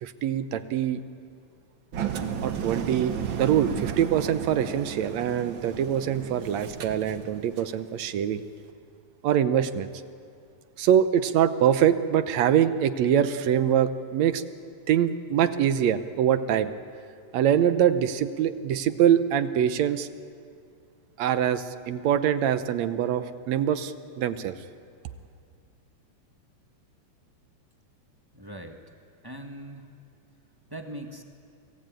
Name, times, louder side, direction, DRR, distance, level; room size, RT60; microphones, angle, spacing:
voice 1, 0.0-1.0 2.4-8.4 9.2-9.9 10.8-14.4 14.9-16.7 17.3-20.1 21.2-24.6, right 9 dB, 70° right, 11 dB, 2.0 m, -24 dB
Engine, 1.9-7.8, right 8 dB, 55° right, 1.4 m, -34 dB
voice 2, 28.3-28.8 29.2-29.9 30.7-31.2, right 1 dB, 25° right, 3 dB, 0.5 m, -40 dB
28.0 x 18.5 x 9.1 m, 2.3 s
omnidirectional pair, 3.5 m